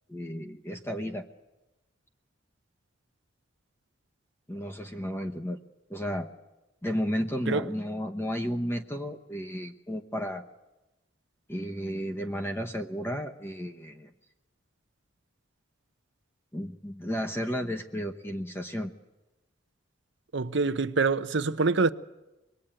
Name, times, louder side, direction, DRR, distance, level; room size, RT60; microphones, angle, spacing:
voice 1, 0.1-1.2 4.5-5.6 5.9-6.3 6.8-10.5 11.5-14.1 16.5-18.9, equal, 10° left, 1.0 m, -33 dB
voice 2, 20.3-21.9, right 4 dB, 60° right, 0.8 m, -25 dB
26.0 x 21.0 x 8.9 m
head